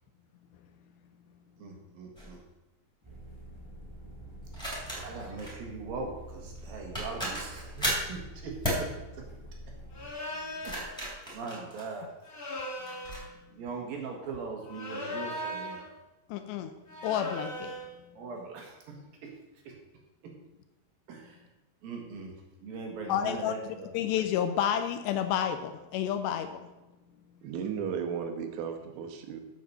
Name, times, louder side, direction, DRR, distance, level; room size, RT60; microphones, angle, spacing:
voice 1, 1.6-2.4 4.9-8.9 10.6-11.1 11.3-12.1 13.5-15.8 18.2-19.4 19.6-19.8 20.2-20.3 21.1-21.4 21.8-23.9, right 4 dB, 65° right, 1 dB, 2.7 m, -40 dB
sound 1, 2.2-2.4 4.5-5.6 6.6-6.7 6.9-8.1 8.6-8.9 10.4-12.3 12.9-13.2, equal, ahead, 3.2 m, -34 dB
sound 2, 3.0-10.1, right 1 dB, 45° right, 0.3 m, -47 dB
sound 3, 9.9-10.8 12.2-13.3 14.7-15.9 16.9-17.9, left 1 dB, 30° left, 2.0 m, -38 dB
voice 2, 16.3-16.7 17.0-17.8 23.1-26.7, left 9 dB, 80° left, 8 dB, 2.6 m, -30 dB
voice 3, 27.4-29.4, right 7 dB, 80° right, 6 dB, 3.4 m, -35 dB
7.6 x 7.5 x 6.8 m, 1.0 s
omnidirectional pair, 5.3 m